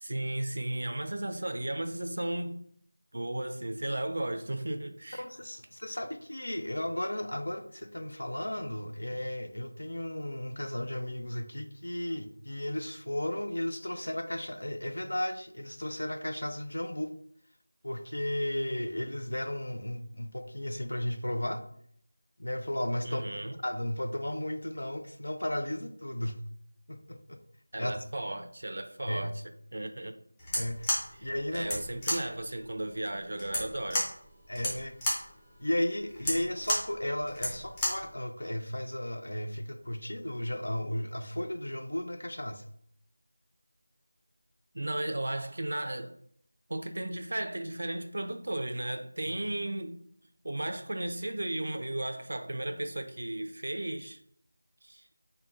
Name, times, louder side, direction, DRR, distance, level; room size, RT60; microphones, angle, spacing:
voice 1, 0.0-2.6 3.1-5.2 23.0-23.6 27.7-29.3 29.7-30.2 31.2-34.1 44.7-46.2 46.7-50.0 50.4-54.2 54.8-55.1, right 1 dB, 55° right, 0.4 m, -35 dB
voice 2, 5.2-17.1 17.8-21.6 22.4-26.4 26.9-27.4 27.8-28.0 29.1-29.3 30.5-30.9 31.2-31.8 34.5-35.0 35.6-42.7, left 1 dB, 85° left, 0.5 m, -34 dB
sound 1, 30.4-38.1, left 1 dB, 10° left, 0.6 m, -33 dB
3.7 x 2.2 x 3.6 m
figure-of-eight pair, 175°, 0 cm